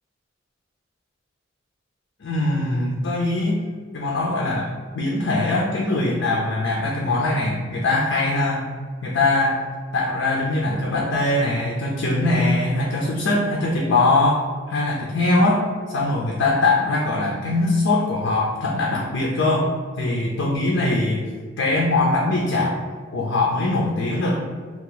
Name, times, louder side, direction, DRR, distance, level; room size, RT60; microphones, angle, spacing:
voice 1, 2.2-3.6 3.9-8.7 9.0-9.6 9.9-15.7 15.9-19.7 20.0-21.2 21.6-22.8 23.1-24.4, left 2 dB, 85° left, -3 dB, 0.5 m, -21 dB
2.8 x 2.4 x 3.9 m, 1.5 s
head